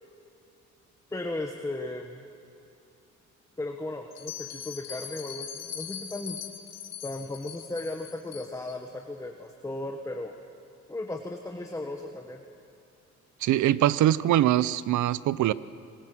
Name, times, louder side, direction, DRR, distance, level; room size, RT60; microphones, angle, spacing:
voice 1, 1.1-2.2 3.6-6.4 7.0-10.3 10.9-12.4, left 2 dB, 10° left, 4 dB, 1.4 m, -36 dB
Bell, 4.1-8.7, left 9 dB, 60° left, 1.8 m, -41 dB
voice 2, 13.4-15.5, right 13 dB, 75° right, 18 dB, 0.7 m, -23 dB
26.0 x 20.0 x 6.2 m, 2.7 s
cardioid pair, 90°, 30 cm